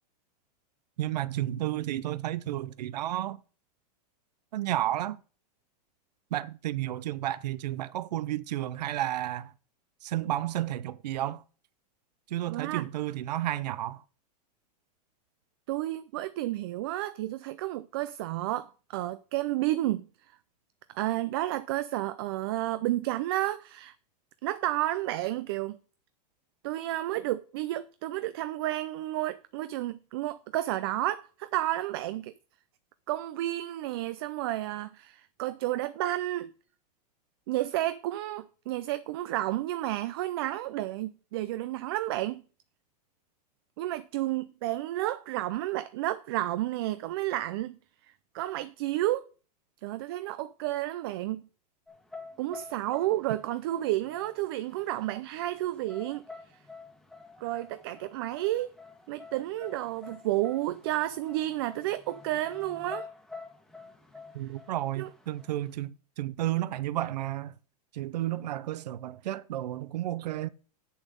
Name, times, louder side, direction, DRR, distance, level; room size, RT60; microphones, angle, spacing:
voice 1, 1.0-3.4 4.5-5.2 6.3-9.5 10.0-11.4 12.3-14.0 64.3-67.5 67.9-70.5, right 14 dB, 80° right, 0.6 m, -32 dB
voice 2, 12.5-12.9 15.7-20.4 20.9-23.9 24.4-25.8 26.6-32.3 33.1-36.5 37.5-42.4 43.8-47.8 48.3-49.3 49.8-51.5 52.4-56.2 57.4-58.7 59.1-63.1 65.0-65.1, right 15 dB, 35° right, 0.4 m, -31 dB
sound 1, 51.9-65.7, left 4 dB, ahead, 1.3 m, -49 dB
8.3 x 7.0 x 5.2 m
supercardioid pair, 175°, 21 cm